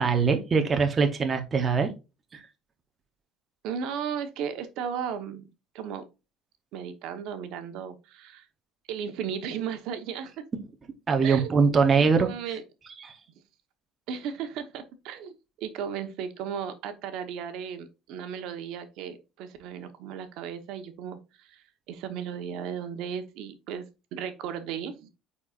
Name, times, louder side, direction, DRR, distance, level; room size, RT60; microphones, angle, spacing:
voice 1, 0.0-1.9 2.3-2.4 11.1-12.3 13.0-13.2, right 5 dB, 25° right, 5 dB, 0.8 m, -22 dB
voice 2, 3.6-5.5 5.7-6.0 6.7-8.5 8.9-10.4 11.2-12.6 14.1-23.9 24.1-25.1, right 7 dB, 65° right, 9 dB, 1.0 m, -35 dB
9.3 x 4.3 x 2.4 m, 0.27 s
cardioid pair, 160°, 0 cm